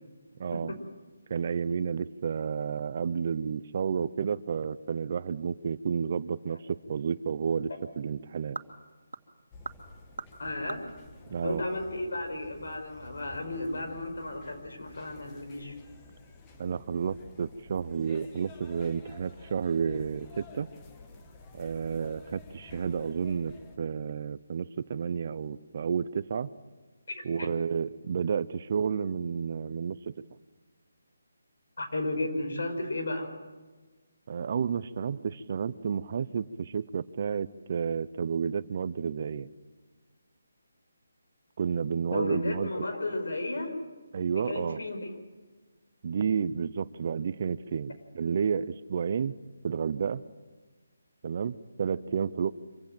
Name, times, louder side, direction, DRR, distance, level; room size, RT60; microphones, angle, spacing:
voice 1, 0.4-0.7 1.3-7.7 8.0-8.6 11.3-11.6 16.6-20.7 21.5-26.5 27.2-30.1 34.3-39.5 41.6-42.7 44.1-44.8 46.0-49.3 49.6-50.2 51.2-52.5, right 6 dB, 35° right, 16 dB, 0.6 m, -31 dB
sound 1, 6.4-12.3, right 3 dB, 85° right, 1.8 m, -46 dB
sound 2, 9.5-23.8, left 3 dB, 15° left, 1.2 m, -51 dB
voice 2, 10.4-10.8 11.4-15.8 27.4-27.5 31.8-33.3 42.1-43.8 44.3-45.1, left 2 dB, 65° left, 5 dB, 5.5 m, -33 dB
25.5 x 16.0 x 7.7 m, 1.3 s
hypercardioid pair, 175°, 0 cm